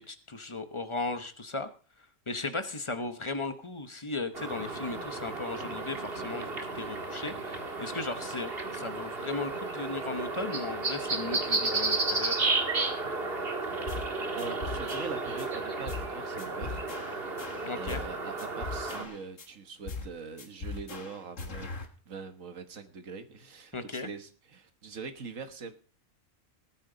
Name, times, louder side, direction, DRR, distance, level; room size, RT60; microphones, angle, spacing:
voice 1, 0.0-1.7 2.3-12.4 17.7-18.0 23.7-24.1, left 3 dB, 25° left, 9 dB, 0.9 m, -36 dB
sound 1, 4.3-19.0, right 3 dB, 50° right, 1.9 m, -33 dB
sound 2, 13.9-14.1 14.4-15.5 15.9-16.1 16.4-18.1 18.4-19.5 19.9-20.1 20.4-21.9, left 4 dB, 75° left, 1.9 m, -40 dB
voice 2, 14.3-16.8 17.7-21.7 22.1-25.8, right 5 dB, 85° right, 8 dB, 1.7 m, -42 dB
19.0 x 9.1 x 3.9 m, 0.40 s
omnidirectional pair, 1.3 m